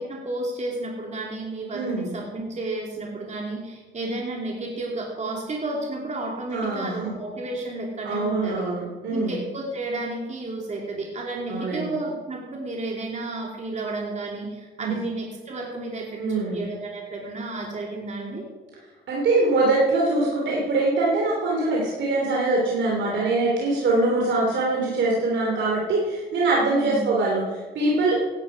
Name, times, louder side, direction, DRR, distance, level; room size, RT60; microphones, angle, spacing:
voice 1, 0.0-8.7 9.1-18.5 26.7-27.1, right 2 dB, 35° right, -1 dB, 2.9 m, -32 dB
voice 2, 1.7-2.1 6.5-7.1 8.0-9.4 11.5-12.0 14.8-15.0 16.2-16.6 19.1-28.2, right 2 dB, 70° right, -2 dB, 3.1 m, -23 dB
16.5 x 11.5 x 4.9 m, 1.3 s
cardioid pair, 90°, 20 cm